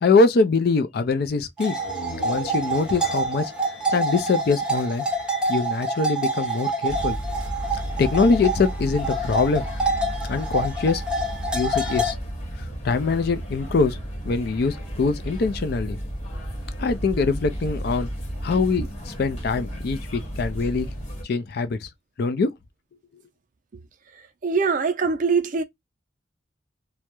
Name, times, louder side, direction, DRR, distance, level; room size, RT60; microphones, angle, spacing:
voice 1, 0.0-1.8 2.2-3.5 3.9-5.0 5.5-7.2 7.7-9.6 10.3-11.0 11.5-12.2 12.8-14.0 14.2-16.0 16.8-18.1 18.4-20.9 21.2-21.9 22.2-22.5, left 4 dB, 60° left, 0.4 m, -23 dB
sound 1, 1.6-12.1, right 2 dB, 5° right, 0.6 m, -27 dB
sound 2, 1.7-5.3, equal, 85° left, 1.0 m, -39 dB
sound 3, 6.9-21.2, equal, 40° left, 1.0 m, -33 dB
voice 2, 24.4-25.6, right 5 dB, 45° right, 0.4 m, -22 dB
2.2 x 2.0 x 2.8 m
head